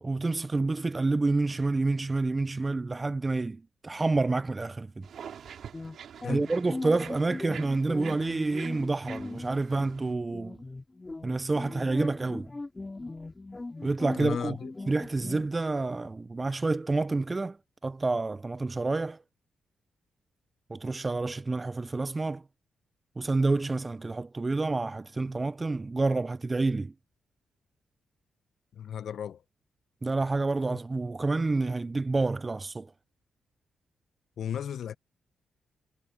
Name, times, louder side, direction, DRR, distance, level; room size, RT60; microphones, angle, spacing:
voice 1, 0.0-5.1 6.3-10.6 11.2-12.5 13.8-14.6 14.9-17.6 17.8-19.2 20.7-22.4 23.2-26.9 30.0-32.9, right 3 dB, 30° right, 0.5 m, -28 dB
Bear Desert walk, 5.0-10.1, right 8 dB, 70° right, 4.8 m, -46 dB
sound 1, 5.7-15.5, left 2 dB, 25° left, 2.7 m, -39 dB
voice 2, 14.1-14.7 28.7-29.4 34.4-35.0, left 9 dB, 70° left, 0.7 m, -35 dB
supercardioid pair, 50°, 0 cm